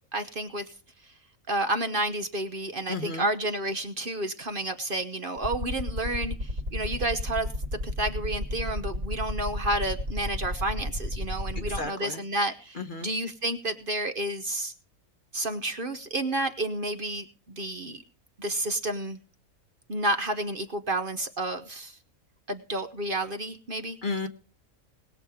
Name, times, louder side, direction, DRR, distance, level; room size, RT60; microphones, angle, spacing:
voice 1, 0.1-0.7 1.5-7.5 7.8-14.7 15.3-18.0 18.4-19.2 19.9-22.0 22.5-24.0, right 1 dB, 45° right, 8 dB, 1.0 m, -30 dB
voice 2, 2.9-3.3 11.5-12.2 12.8-13.1 24.0-24.3, left 3 dB, 40° left, 8 dB, 1.1 m, -33 dB
sound 1, 5.4-11.8, left 1 dB, 65° right, 2.8 m, -31 dB
20.5 x 7.4 x 4.9 m, 0.35 s
omnidirectional pair, 1.5 m